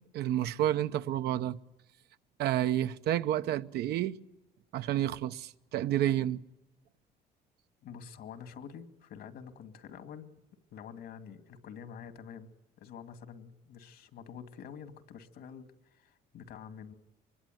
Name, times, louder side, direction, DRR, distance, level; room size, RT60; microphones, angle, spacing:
voice 1, 0.1-1.6 2.4-4.1 4.7-6.4, right 12 dB, 75° right, 0.9 m, -30 dB
voice 2, 7.8-10.3 10.7-16.9, left 7 dB, 70° left, 2.2 m, -47 dB
24.5 x 21.5 x 9.2 m
cardioid pair, 110°, 17 cm